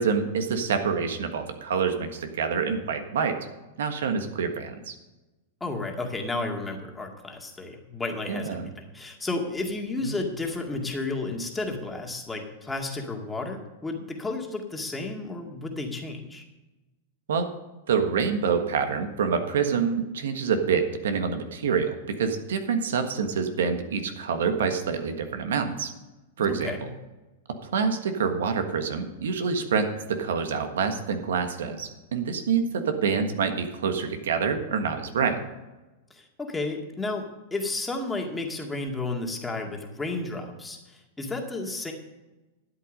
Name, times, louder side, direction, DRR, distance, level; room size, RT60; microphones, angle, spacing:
voice 1, 0.0-3.4 3.8-4.9 8.3-8.7 10.0-10.1 17.3-17.5 17.9-25.9 26.4-26.7 27.5-35.4, right 6 dB, 80° right, 7 dB, 1.5 m, -26 dB
voice 2, 5.6-16.4 26.4-26.9 36.1-41.9, left 3 dB, 10° left, 1 dB, 2.0 m, -32 dB
12.5 x 8.3 x 5.3 m, 1.1 s
hypercardioid pair, 120°, 0 cm